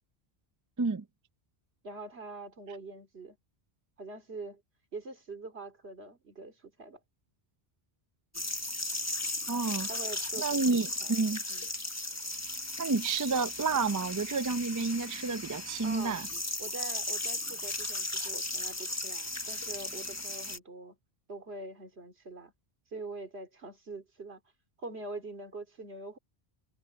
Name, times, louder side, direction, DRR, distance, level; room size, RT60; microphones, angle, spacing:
voice 1, 1.8-3.4 4.0-4.6 4.9-7.0 9.9-11.2 11.5-11.7 15.8-16.2 16.6-21.0 21.3-22.5 22.9-24.4 24.8-26.2, right 3 dB, 80° right, 2.9 m, -44 dB
sound 1, 8.3-20.6, left 2 dB, 15° left, 1.1 m, -36 dB
voice 2, 9.5-9.9 10.4-11.4 12.8-16.3, right 4 dB, 25° right, 0.4 m, -30 dB
omnidirectional pair, 1.1 m